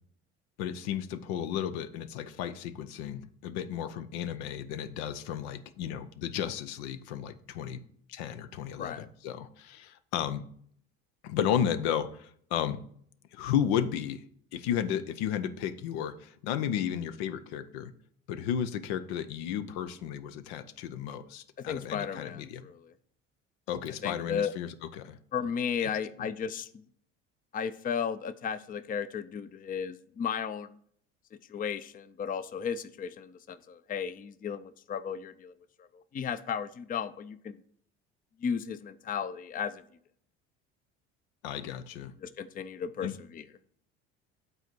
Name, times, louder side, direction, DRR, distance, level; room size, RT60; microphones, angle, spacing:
voice 1, 0.6-7.8 8.1-10.4 11.2-12.8 13.3-14.2 14.5-17.9 18.3-22.7 23.7-25.2 25.8-25.9 41.4-42.1 43.0-43.1, left 9 dB, 80° left, 11 dB, 0.7 m, -33 dB
voice 2, 21.7-22.9 24.0-24.5 25.3-26.7 27.5-30.7 31.5-35.5 35.8-37.6 38.4-39.8 42.2-43.4, left 7 dB, 25° left, 13 dB, 0.5 m, -34 dB
7.9 x 4.1 x 6.0 m, 0.63 s
supercardioid pair, 80°, 32 cm